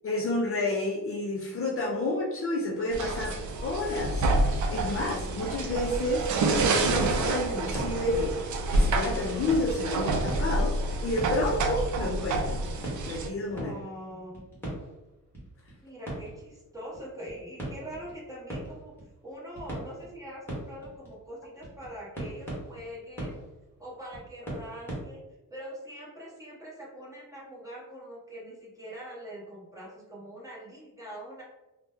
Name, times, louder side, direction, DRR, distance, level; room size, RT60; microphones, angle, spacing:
voice 1, 0.0-8.4 8.7-12.7 13.1-13.7, left 2 dB, 40° left, -2 dB, 0.4 m, -30 dB
sound 1, 2.9-13.3, right 2 dB, 55° right, 0.4 m, -28 dB
sound 2, 7.7-12.2 12.5-25.0, right 1 dB, 5° left, 1.1 m, -41 dB
voice 2, 13.5-14.5 15.8-18.9 19.2-23.3 23.8-25.2 25.5-31.4, equal, 10° right, -5 dB, 0.7 m, -43 dB
2.8 x 2.1 x 3.4 m, 1.0 s
wide cardioid pair, 170°, 35 cm